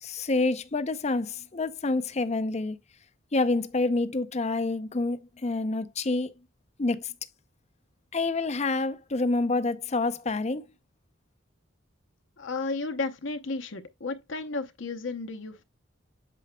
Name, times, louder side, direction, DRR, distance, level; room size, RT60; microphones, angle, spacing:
voice 1, 0.0-2.8 3.3-6.3 6.8-7.1 8.1-10.7, left 3 dB, 30° left, 0.6 m, -27 dB
voice 2, 12.4-15.6, left 3 dB, 60° left, 0.8 m, -33 dB
8.3 x 6.9 x 2.2 m
head